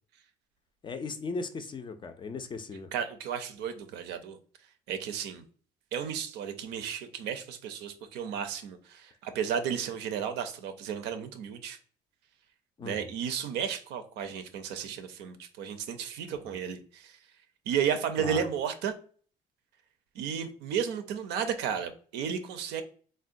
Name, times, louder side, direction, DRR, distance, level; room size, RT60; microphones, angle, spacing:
voice 1, 0.8-2.9 12.8-13.1 16.5-16.6 18.2-18.4, left 4 dB, 30° left, 0.4 m, -37 dB
voice 2, 2.9-4.4 4.9-5.4 5.9-11.8 12.8-17.2 17.7-18.9 20.1-22.8, right 8 dB, 90° right, 0.5 m, -33 dB
3.8 x 2.1 x 2.5 m
cardioid pair, 110°, 17 cm